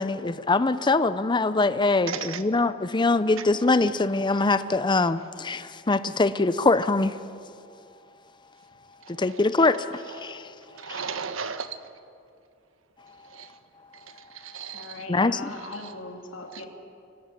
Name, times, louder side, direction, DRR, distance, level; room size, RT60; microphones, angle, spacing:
voice 1, 0.0-7.2 9.1-10.5 10.9-11.0 15.1-15.4, left 3 dB, 25° left, 13 dB, 0.6 m, -23 dB
voice 2, 2.1-2.4 9.1-9.4 10.2-10.4 10.7-11.8 13.3-13.5 14.3-15.0 15.8-15.9 16.5-16.6, right 6 dB, 85° right, 10 dB, 1.4 m, -35 dB
voice 3, 14.7-16.7, left 2 dB, 70° left, 2 dB, 2.6 m, -39 dB
24.5 x 17.5 x 9.8 m, 2.4 s
head